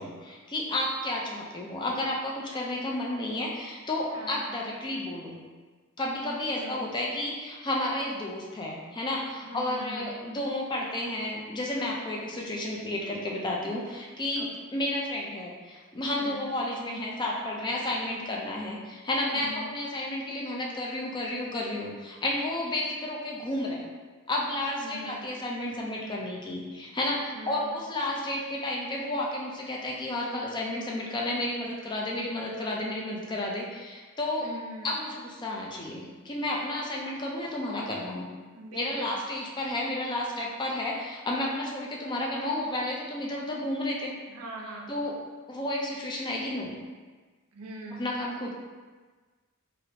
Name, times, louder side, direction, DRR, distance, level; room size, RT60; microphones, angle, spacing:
voice 1, 0.0-5.4 6.0-23.9 24.3-34.5 34.8-38.2 38.7-44.1 44.9-45.2 45.5-46.7 47.9-48.5, left 1 dB, 20° left, -2 dB, 0.4 m, -32 dB
voice 2, 4.1-4.5 6.5-6.9 9.4-10.2 14.4-14.5 16.2-16.5 19.3-19.7 24.8-25.2 27.3-27.7 34.4-34.9 38.5-39.1 44.3-45.0 47.5-48.0, right 1 dB, 80° right, 0 dB, 0.5 m, -42 dB
3.3 x 2.5 x 2.8 m, 1.4 s
head